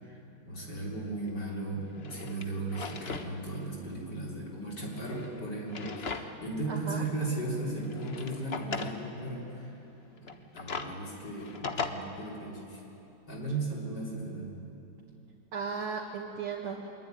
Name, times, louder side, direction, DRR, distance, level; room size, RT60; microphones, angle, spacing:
voice 1, 0.0-9.8 10.1-12.8 13.3-14.5, right 2 dB, 55° left, -3 dB, 4.2 m, -36 dB
Drawer open or close, 1.3-1.4 1.9-3.3 3.7-3.8 4.8-6.5 6.9-7.0 7.8-9.0 10.2-11.9, left 5 dB, 40° left, 1.1 m, -38 dB
voice 2, 6.7-7.1 15.5-16.9, right 5 dB, 90° right, -2 dB, 2.8 m, -36 dB
24.0 x 22.0 x 9.4 m, 2.9 s
omnidirectional pair, 2.2 m